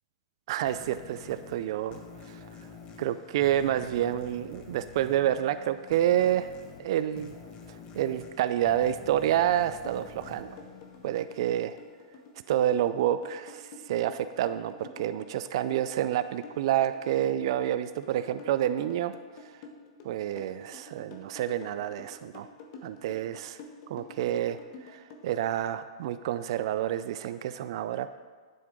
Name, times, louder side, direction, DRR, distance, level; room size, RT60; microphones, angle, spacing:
voice 1, 0.5-2.0 3.0-6.5 6.8-7.4 7.9-10.6 11.0-11.8 12.5-19.1 20.0-22.5 22.8-23.6 23.9-24.6 24.9-28.1, right 11 dB, 60° right, 12 dB, 0.4 m, -28 dB
sound 1, 0.7-11.8, left 6 dB, 30° left, 1.3 m, -48 dB
sound 2, 9.8-25.2, left 4 dB, 45° left, 1.4 m, -48 dB
9.3 x 7.7 x 3.7 m, 1.5 s
hypercardioid pair, 130°, 3 cm